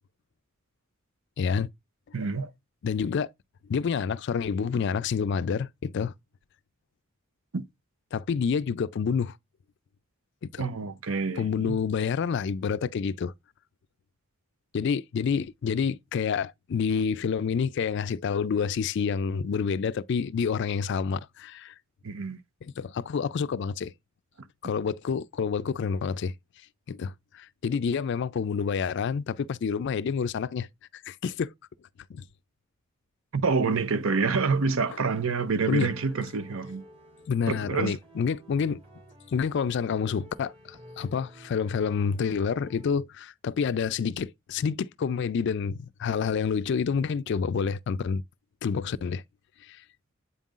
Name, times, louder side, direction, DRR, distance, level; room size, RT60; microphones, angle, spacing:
voice 1, 1.4-1.7 2.8-3.3 3.7-6.1 8.1-9.3 10.5-10.7 11.4-13.3 14.7-21.7 22.6-23.9 24.6-26.3 26.9-30.7 31.1-31.5 32.1-32.2 35.7-35.9 37.3-38.8 39.3-48.2 48.6-49.2 49.6-49.8, left 6 dB, 55° left, 0.3 m, -28 dB
voice 2, 2.1-2.5 7.5-7.7 10.6-11.8 22.0-22.4 33.3-36.8 37.5-38.0, right 4 dB, 75° right, 0.7 m, -27 dB
sound 1, 34.2-43.0, left 1 dB, 35° right, 2.7 m, -52 dB
8.1 x 5.4 x 2.4 m
head